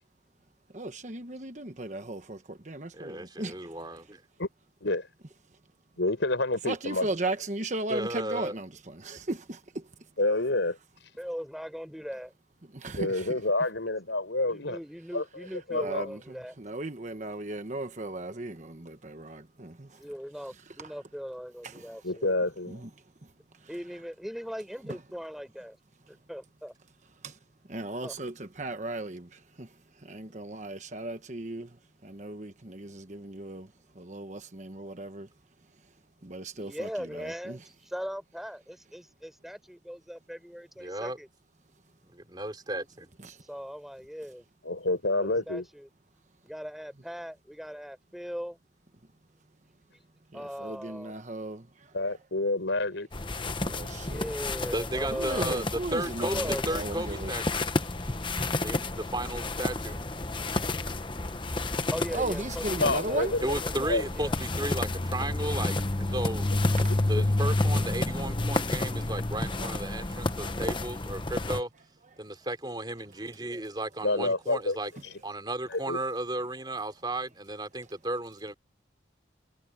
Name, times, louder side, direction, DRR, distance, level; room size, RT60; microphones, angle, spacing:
voice 1, 0.7-3.5 6.7-9.8 12.7-13.4 15.7-16.2 16.6-19.9 21.6-21.9 22.7-22.9 27.2-27.4 27.7-29.7 30.0-31.7 32.0-33.7 34.0-35.3 36.2-37.6 43.2-43.4 50.3-51.7 53.6-54.3 55.1-57.3 62.1-63.3 66.8-66.9, right 2 dB, 40° right, 1.2 m, -36 dB
voice 2, 2.9-4.2 7.9-8.5 40.8-41.2 42.1-43.1 54.7-55.6 55.9-56.3 56.7-57.6 58.6-60.0 63.4-66.5 67.1-71.7 72.2-74.9 75.2-78.5, right 1 dB, 25° right, 3.2 m, -34 dB
voice 3, 6.0-7.1 10.2-10.8 13.0-14.8 15.1-15.2 15.7-16.1 22.0-22.8 44.6-45.6 51.9-53.1 62.8-63.4 63.7-64.0 66.9-67.2 74.0-74.8 75.7-76.0, left 2 dB, 80° left, 4.7 m, -28 dB
voice 4, 11.2-12.3 14.5-16.6 20.0-22.4 23.7-25.8 26.1-26.7 28.0-28.2 36.6-41.3 43.5-44.5 45.2-45.9 46.5-48.6 50.3-51.3 54.0-55.6 56.2-56.8 61.9-64.4 73.4-73.7, equal, ahead, 5.9 m, -39 dB
sound 1, 53.1-71.6, left 2 dB, 25° left, 1.0 m, -30 dB
head